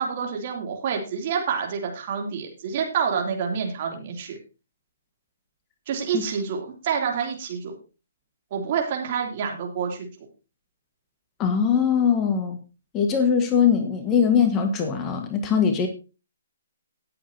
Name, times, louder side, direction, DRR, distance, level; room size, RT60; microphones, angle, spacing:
voice 1, 0.0-4.4 5.9-7.7 8.5-10.1, right 6 dB, 40° right, 2 dB, 3.0 m, -28 dB
voice 2, 11.4-12.6 12.9-15.9, left 7 dB, 20° left, 6 dB, 1.6 m, -21 dB
18.5 x 7.7 x 2.9 m, 0.32 s
figure-of-eight pair, 130°, 0 cm